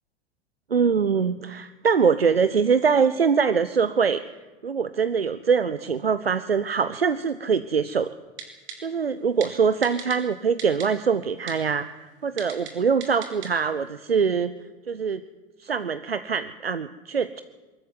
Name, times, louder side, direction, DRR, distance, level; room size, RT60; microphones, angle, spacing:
voice 1, 0.7-4.2 4.6-8.1 8.8-14.5 14.9-15.2 15.6-17.4, right 6 dB, 85° right, 13 dB, 0.7 m, -23 dB
Typing, 8.4-8.7 9.4-9.5 9.8-10.2 10.6-10.9 11.5-11.6 12.4-12.7 13.0-13.5 13.8-13.9, right 7 dB, 40° right, 4.4 m, -36 dB
22.5 x 14.0 x 9.5 m, 1.3 s
figure-of-eight pair, 80°, 29 cm